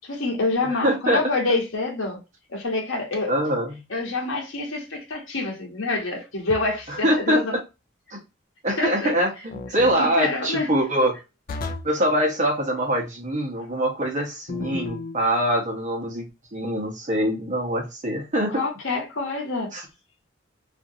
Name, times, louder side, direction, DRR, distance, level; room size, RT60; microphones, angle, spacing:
voice 1, 0.0-2.2 2.5-3.3 3.9-7.5 8.8-9.1 10.0-10.7 18.5-19.7, left 3 dB, 85° left, 1.1 m, -26 dB
voice 2, 0.6-1.2 3.3-3.8 6.9-7.6 8.1-8.2 8.6-11.2 11.8-18.6 19.7-19.9, equal, 40° right, 1.0 m, -24 dB
sound 1, 6.5-7.0 9.5-10.0 11.5-12.0 14.5-15.2, left 3 dB, 45° left, 0.4 m, -33 dB
2.6 x 2.5 x 2.7 m
head